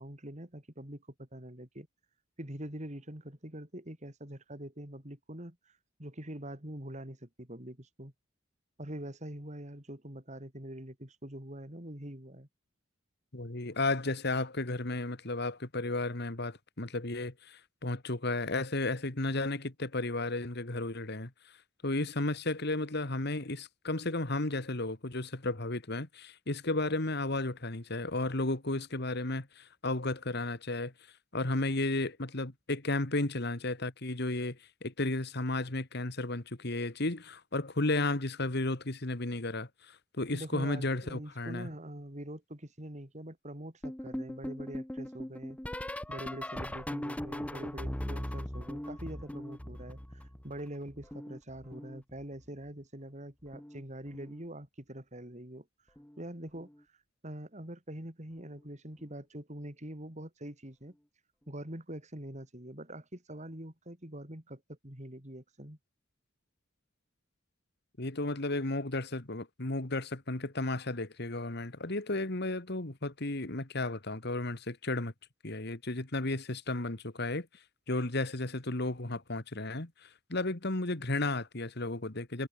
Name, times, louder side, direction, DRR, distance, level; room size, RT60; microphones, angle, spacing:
voice 1, 0.0-1.9 2.4-8.1 8.8-12.5 40.3-45.6 46.1-55.7 56.2-60.9 61.5-65.8, right 1 dB, 35° right, 4.4 m, -44 dB
voice 2, 13.3-21.3 21.8-30.9 31.3-39.7 40.2-41.7 68.0-75.1 75.4-77.5 77.9-82.5, left 2 dB, 55° left, 2.1 m, -33 dB
sound 1, 43.8-50.6 50.9-52.5 53.5-53.8 54.1-54.4 56.0-56.2 56.6-56.8 58.4-58.5, left 1 dB, 5° left, 0.7 m, -40 dB
head